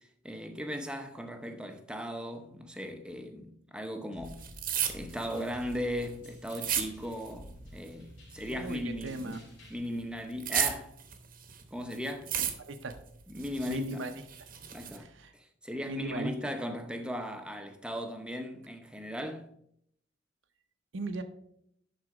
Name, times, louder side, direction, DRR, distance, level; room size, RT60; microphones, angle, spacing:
voice 1, 0.2-4.4 4.9-9.4 9.7-10.9 11.7-12.3 13.3-14.0 14.7-15.1 15.3-19.5, equal, 5° right, 0.7 m, -37 dB
sound 1, 4.1-9.8, left 1 dB, 65° left, 3.7 m, -51 dB
sound 2, 4.3-7.5 7.8-9.4 9.8-11.6 11.9-12.9 13.3-15.0, right 9 dB, 45° right, 0.9 m, -34 dB
voice 2, 8.5-9.4 12.4-13.0 13.7-14.2 15.0-15.3 15.9-16.3 20.9-21.2, right 2 dB, 70° right, 0.7 m, -37 dB
11.0 x 4.1 x 4.8 m
head